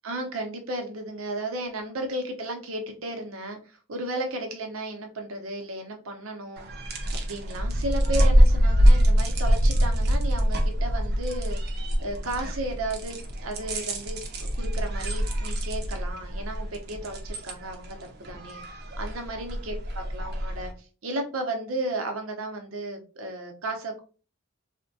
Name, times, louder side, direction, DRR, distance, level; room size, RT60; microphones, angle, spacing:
voice 1, 0.0-6.9 7.1-20.7 21.0-24.0, right 2 dB, 85° right, 4 dB, 0.7 m, -34 dB
sound 1, 6.6-20.7, equal, 50° right, 0.6 m, -24 dB
3.4 x 2.1 x 2.6 m, 0.37 s
head